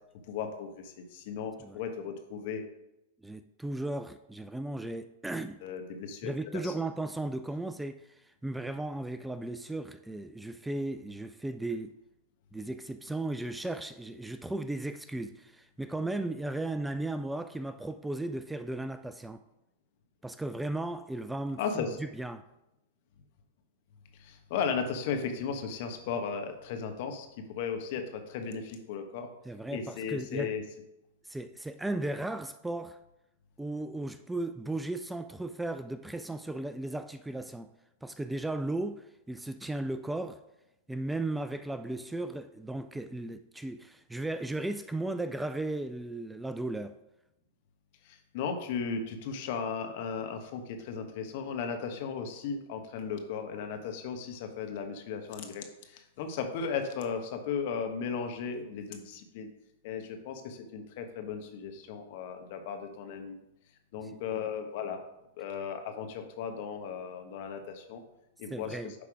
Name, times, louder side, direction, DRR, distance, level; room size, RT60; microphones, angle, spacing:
voice 1, 0.3-2.6 5.6-6.7 21.6-22.0 24.2-29.3 29.7-30.6 48.0-59.5 59.8-63.4 63.9-65.0 65.4-68.0 68.4-68.9, left 6 dB, 55° left, 1.3 m, -36 dB
voice 2, 3.2-5.6 6.2-11.9 12.5-19.4 20.2-22.4 29.5-30.5 31.2-33.0 33.6-37.7 38.0-40.4 40.9-47.0 68.5-68.9, right 2 dB, 5° right, 0.4 m, -36 dB
9.9 x 3.5 x 5.0 m
hypercardioid pair, 115°, 0 cm